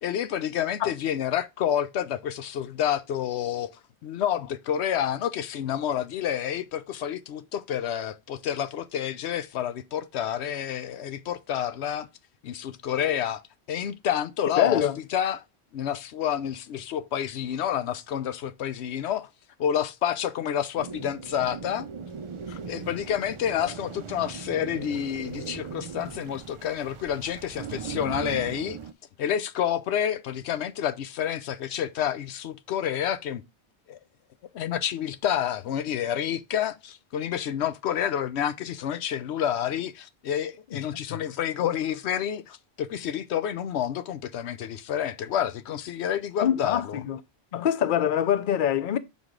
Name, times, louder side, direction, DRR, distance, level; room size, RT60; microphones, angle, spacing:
voice 1, 0.0-3.7 4.0-12.1 12.4-13.4 13.7-15.4 15.7-19.3 19.6-21.9 22.6-28.8 29.2-33.4 33.9-34.0 34.5-47.0, left 9 dB, 90° left, 0.9 m, -29 dB
voice 2, 14.6-15.0 22.5-22.6 40.7-40.8 41.1-41.2 46.4-47.2 47.5-49.0, left 9 dB, 55° left, 0.7 m, -24 dB
sound 1, 20.8-28.9, right 6 dB, 50° right, 0.3 m, -39 dB
7.2 x 4.9 x 3.7 m
omnidirectional pair, 1.1 m